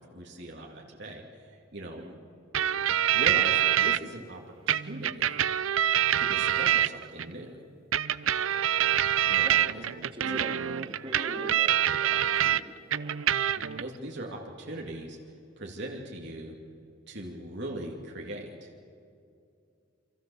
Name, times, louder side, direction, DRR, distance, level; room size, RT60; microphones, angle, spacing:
voice 1, 0.0-2.1 3.1-4.4 4.7-5.4 6.2-7.6 9.3-9.8 10.3-10.4 13.6-15.2 15.6-16.6 17.1-18.7, right 1 dB, 60° right, -1 dB, 2.5 m, -40 dB
voice 2, 1.8-2.2 9.4-9.7 10.0-13.2, right 1 dB, 25° right, 1 dB, 3.3 m, -43 dB
sound 1, 2.5-4.0 4.7-7.3 7.9-12.6 12.9-13.8, right 10 dB, 90° right, 0.6 m, -26 dB
27.5 x 26.0 x 7.1 m, 2.5 s
head